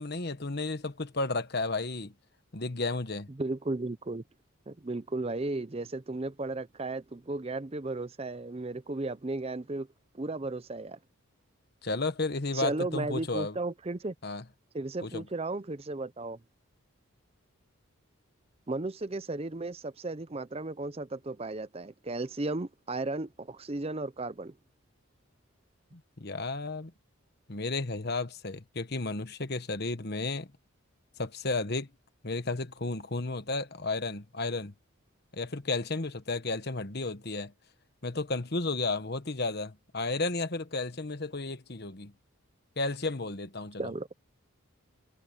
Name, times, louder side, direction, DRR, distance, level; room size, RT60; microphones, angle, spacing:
voice 1, 0.0-2.1 2.5-3.3 11.8-13.6 14.2-14.4 15.0-15.2 25.9-26.9 27.5-30.5 31.2-31.9 32.2-34.7 35.3-37.5 38.0-42.1 42.8-43.9, left 3 dB, 50° left, 1.3 m, -33 dB
voice 2, 3.4-4.2 4.7-9.9 10.1-11.0 12.5-14.1 14.7-16.4 18.7-24.5 43.8-44.1, right 2 dB, 25° right, 0.6 m, -35 dB
head